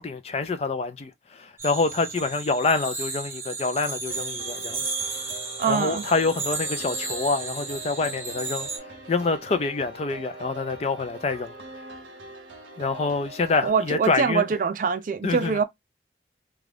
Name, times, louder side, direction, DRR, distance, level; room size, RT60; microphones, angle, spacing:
voice 1, 0.0-5.2 5.7-8.7 9.1-11.5 12.8-14.4 15.2-15.6, left 3 dB, 35° left, 0.3 m, -26 dB
sound 1, 1.6-8.8, right 3 dB, 15° right, 0.7 m, -33 dB
sound 2, 4.1-13.7, right 2 dB, 85° right, 0.6 m, -42 dB
voice 2, 5.6-6.0 13.6-15.6, right 5 dB, 45° right, 0.3 m, -24 dB
2.5 x 2.3 x 3.3 m
head